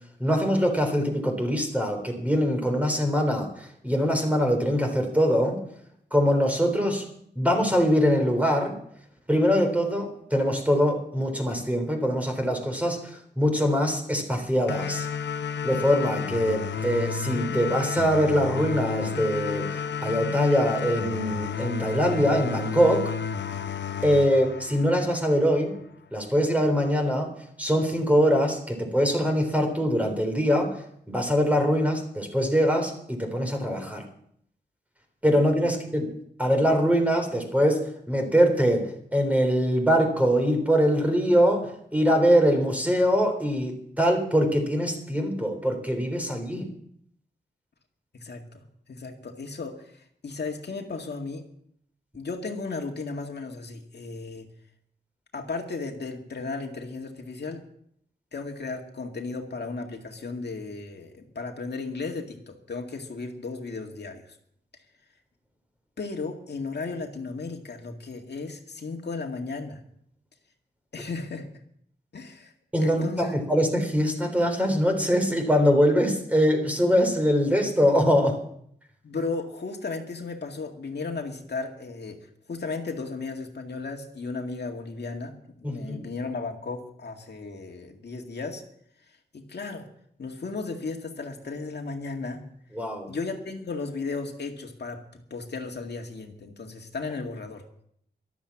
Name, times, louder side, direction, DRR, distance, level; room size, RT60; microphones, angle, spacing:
voice 1, 0.2-5.6 6.1-7.1 7.4-8.8 9.3-15.1 15.6-23.1 24.0-25.8 26.1-27.3 27.6-30.7 31.1-34.0 35.2-36.1 36.4-46.7 72.7-78.4 85.6-86.0 92.7-93.1, equal, 10° right, 3 dB, 3.8 m, -23 dB
sound 1, 14.7-25.7, left 6 dB, 85° left, 0.8 m, -31 dB
voice 2, 48.1-48.4 48.9-51.4 52.1-54.5 55.3-57.6 58.3-64.4 66.0-69.8 70.9-71.5 72.1-72.5 72.8-73.4 79.0-82.2 82.5-88.6 89.1-89.9 90.2-92.4 93.1-97.6, left 3 dB, 70° left, 2 dB, 2.0 m, -35 dB
13.5 x 12.5 x 6.0 m, 0.68 s
wide cardioid pair, 95°, 18 cm